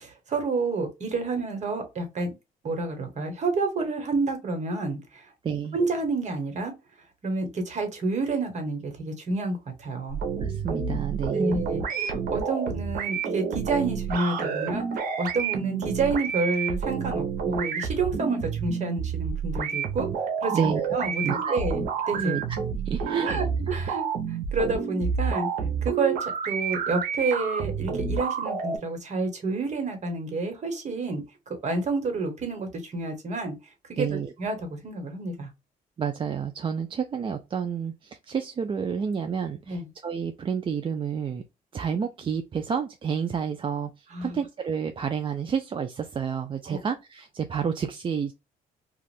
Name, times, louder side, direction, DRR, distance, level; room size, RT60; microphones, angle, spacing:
voice 1, 0.0-2.3 2.6-5.3 5.7-6.7 7.2-10.2 11.3-20.1 20.4-22.4 23.2-25.5 25.8-31.2 31.6-35.5 39.6-39.9 44.1-44.4 46.7-46.8, right 3 dB, 50° right, 1.2 m, -29 dB
voice 2, 5.4-5.8 10.4-11.6 20.5-20.8 21.2-22.4 22.9-23.3 23.6-23.7 34.0-34.3 36.0-41.4 41.7-48.3, right 7 dB, 35° right, 0.4 m, -30 dB
sound 1, 10.1-28.8, right 6 dB, 80° right, 0.7 m, -29 dB
2.6 x 2.4 x 3.3 m
cardioid pair, 90°, 15 cm